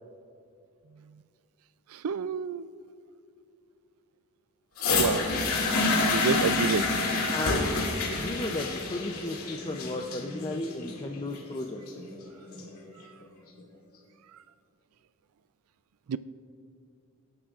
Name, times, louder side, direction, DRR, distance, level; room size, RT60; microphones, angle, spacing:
voice 1, 1.9-2.7 5.0-5.2 6.1-6.9 16.1-16.2, right 6 dB, 90° right, 15 dB, 0.4 m, -28 dB
sound 1, 4.8-12.8 13.6-13.7, left 3 dB, 85° left, 2.3 m, -28 dB
voice 2, 7.3-7.8 8.1-11.8, left 2 dB, 20° left, 2 dB, 0.5 m, -34 dB
25.0 x 11.5 x 2.5 m, 2.5 s
head